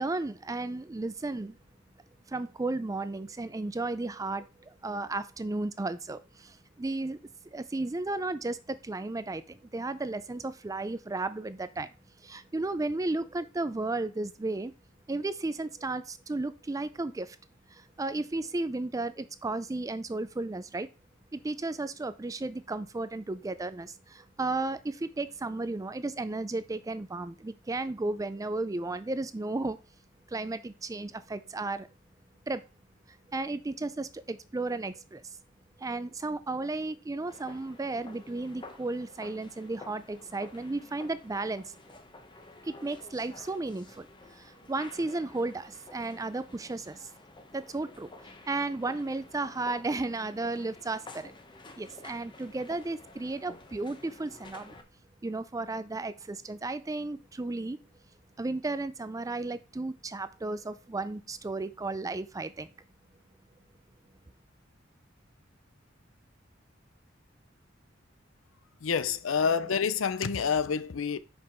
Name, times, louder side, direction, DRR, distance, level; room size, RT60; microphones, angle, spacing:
voice 1, 0.0-1.6 2.3-7.2 7.4-11.9 12.2-14.7 15.1-17.4 17.7-20.9 21.3-29.8 30.3-31.9 32.5-32.6 33.3-35.4 35.8-41.7 42.6-47.1 47.5-48.1 48.5-51.3 51.8-54.7 55.2-57.8 58.4-62.7, right 2 dB, 15° right, 0.4 m, -34 dB
sound 1, 37.3-54.8, left 2 dB, 25° left, 0.8 m, -51 dB
voice 2, 68.8-71.2, left 6 dB, 80° left, 0.5 m, -28 dB
5.8 x 5.3 x 4.3 m
head